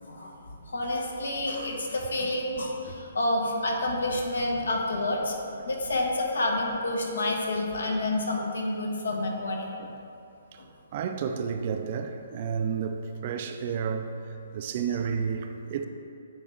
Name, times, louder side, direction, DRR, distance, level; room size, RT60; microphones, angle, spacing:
voice 1, 0.0-0.3 0.7-5.4 5.6-9.7 10.6-10.7, left 1 dB, 80° left, 1.1 m, -29 dB
voice 2, 10.9-14.1 14.5-15.8, right 6 dB, 45° right, 0.4 m, -31 dB
9.6 x 3.4 x 3.8 m
hypercardioid pair, 145°, 0 cm